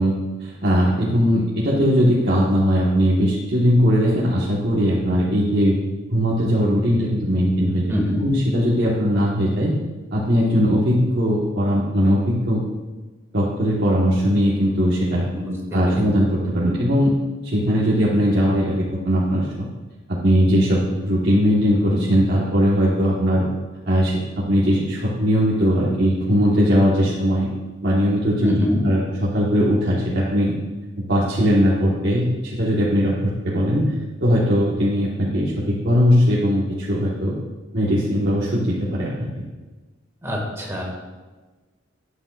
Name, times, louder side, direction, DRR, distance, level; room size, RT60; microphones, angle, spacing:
voice 1, 0.0-5.7 6.1-7.9 8.2-9.7 10.1-12.6 13.3-15.3 15.7-17.1 17.4-19.5 20.1-23.4 23.9-27.5 27.8-28.6 28.8-30.5 31.0-34.0 34.2-37.4 37.7-39.3, equal, 60° right, -7 dB, 1.4 m, -19 dB
voice 2, 7.9-8.3 15.3-15.9 28.4-28.8 40.2-40.8, left 1 dB, 15° right, -2 dB, 1.9 m, -24 dB
11.5 x 8.9 x 2.5 m, 1.2 s
head